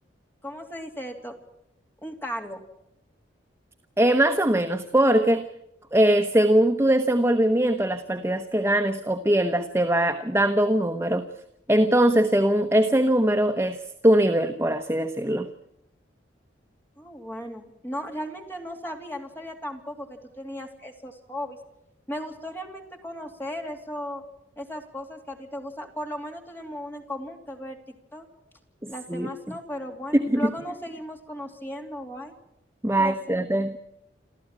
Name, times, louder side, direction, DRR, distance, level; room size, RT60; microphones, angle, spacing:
voice 1, 0.4-1.3 2.0-2.6 17.0-21.6 22.1-24.2 24.6-28.3 28.9-32.3 33.0-33.4, equal, 10° left, 3 dB, 2.8 m, -36 dB
voice 2, 4.0-5.5 5.9-11.3 11.7-15.5 28.8-29.3 30.3-30.5 32.8-33.7, right 1 dB, 15° right, 6 dB, 1.0 m, -21 dB
28.0 x 13.5 x 8.8 m, 0.82 s
head